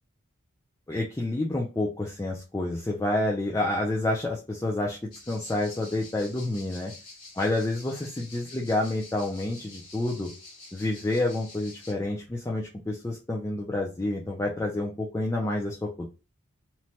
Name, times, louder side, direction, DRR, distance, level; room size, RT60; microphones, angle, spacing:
voice 1, 0.9-5.0 5.3-6.9 7.4-10.3 10.7-16.1, left 2 dB, 15° left, -2 dB, 0.3 m, -29 dB
sound 1, 5.1-11.9, left 3 dB, 55° left, 1.6 m, -48 dB
3.0 x 2.2 x 2.7 m, 0.30 s
head